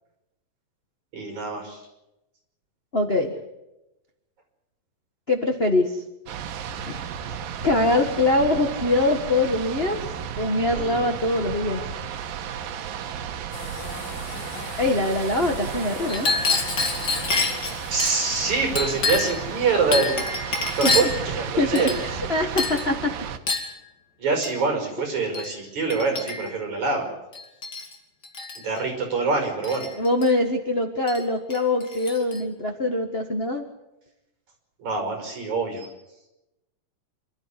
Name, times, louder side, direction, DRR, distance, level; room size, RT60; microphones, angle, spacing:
voice 1, 1.1-1.8 10.7-11.2 17.9-20.2 20.8-21.9 24.2-27.1 28.6-29.9 34.8-35.9, right 4 dB, 55° right, 3 dB, 6.6 m, -25 dB
voice 2, 2.9-3.3 5.3-6.0 7.2-11.8 14.8-16.3 20.8-20.9 21.6-23.1 30.0-33.6, left 2 dB, 50° left, 3 dB, 0.7 m, -23 dB
sound 1, 6.3-23.4, right 8 dB, 90° right, 3.0 m, -34 dB
sound 2, 13.5-21.9, left 5 dB, 65° left, 3.9 m, -41 dB
Chink clink, 16.1-18.1 18.8-19.4 19.9-21.2 21.8-22.3 22.6-22.9 23.5-23.7 24.4-24.6 25.3-25.5 25.9-26.6 27.3-27.9 28.2-28.6 29.6-30.3 31.1-31.2 31.5-32.4, left 4 dB, 30° left, 3.2 m, -27 dB
26.0 x 13.0 x 9.8 m, 0.93 s
omnidirectional pair, 3.9 m